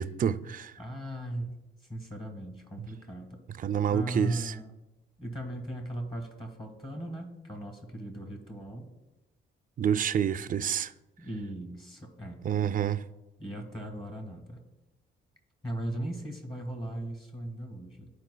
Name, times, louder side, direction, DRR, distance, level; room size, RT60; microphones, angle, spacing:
voice 1, 0.0-0.7 3.6-4.5 9.8-10.9 12.4-13.0, right 8 dB, 45° right, 0.4 m, -28 dB
voice 2, 0.8-1.5 1.8-3.4 3.9-4.7 5.2-8.9 11.2-12.4 13.4-14.6 15.6-18.1, right 1 dB, 25° left, 1.5 m, -38 dB
13.0 x 4.5 x 2.2 m
cardioid pair, 90°, 20 cm